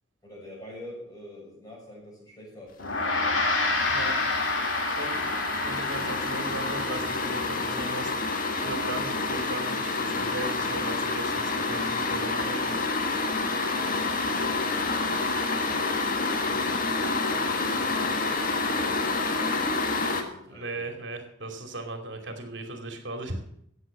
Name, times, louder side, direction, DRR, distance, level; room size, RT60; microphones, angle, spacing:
voice 1, 0.2-3.4 13.1-15.2 16.0-20.9, left 1 dB, 20° left, -4 dB, 6.9 m, -46 dB
Gong, 2.8-12.4, left 2 dB, 80° left, 2.7 m, -31 dB
sound 1, 3.0-20.2, left 3 dB, 45° left, 1.6 m, -28 dB
voice 2, 3.9-4.2 4.9-5.3 5.6-12.8 20.5-23.6, right 2 dB, 65° right, 5 dB, 2.7 m, -38 dB
14.5 x 8.3 x 7.4 m, 0.69 s
head